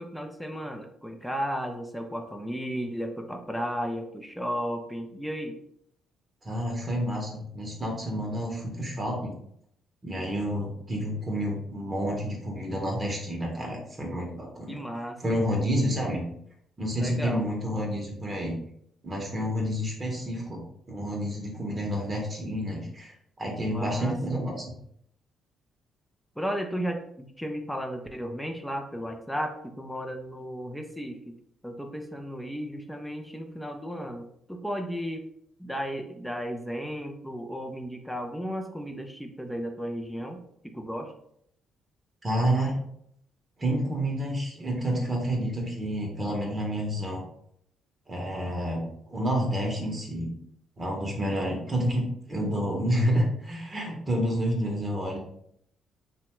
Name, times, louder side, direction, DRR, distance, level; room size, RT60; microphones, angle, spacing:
voice 1, 0.0-5.6 14.7-15.5 17.0-17.5 23.7-24.4 26.4-31.3 31.6-35.2 35.6-41.1, equal, 5° left, 4 dB, 0.4 m, -34 dB
voice 2, 6.4-9.3 10.0-14.8 15.2-16.2 16.8-18.6 19.0-20.6 20.9-23.1 23.4-24.7 42.2-42.7 43.6-47.2 48.1-48.8 49.1-50.3 50.8-55.2, equal, 35° right, -1 dB, 0.8 m, -29 dB
2.7 x 2.1 x 3.0 m, 0.71 s
supercardioid pair, 60°, 0 cm